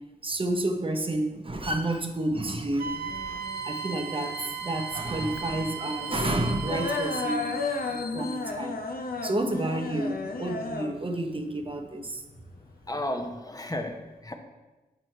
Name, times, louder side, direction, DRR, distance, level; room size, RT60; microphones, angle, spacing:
voice 1, 0.2-3.0 3.3-7.5 7.9-8.8 9.2-12.2, right 1 dB, 30° right, 5 dB, 0.8 m, -30 dB
Wind instrument woodwind instrument, 2.8-7.4, right 7 dB, 65° right, 0.4 m, -36 dB
sound 1, 2.9-12.9, left 3 dB, 60° left, 0.6 m, -34 dB
sound 2, 3.4-8.4, left 5 dB, 80° left, 1.0 m, -44 dB
voice 2, 12.9-14.3, left 1 dB, 20° left, 4 dB, 0.9 m, -33 dB
6.6 x 4.6 x 4.5 m, 1.2 s
cardioid pair, 60°, 17 cm